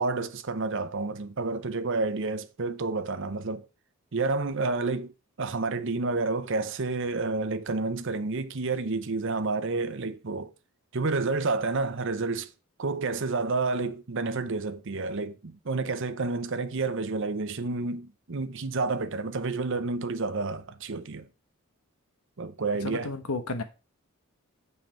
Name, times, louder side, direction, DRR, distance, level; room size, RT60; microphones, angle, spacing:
voice 1, 0.0-3.6 4.1-10.5 10.9-12.5 12.8-21.3 22.4-23.1, right 3 dB, 55° right, 0.7 m, -30 dB
voice 2, 22.8-23.6, left 3 dB, 85° left, 1.2 m, -32 dB
7.4 x 5.6 x 4.4 m
head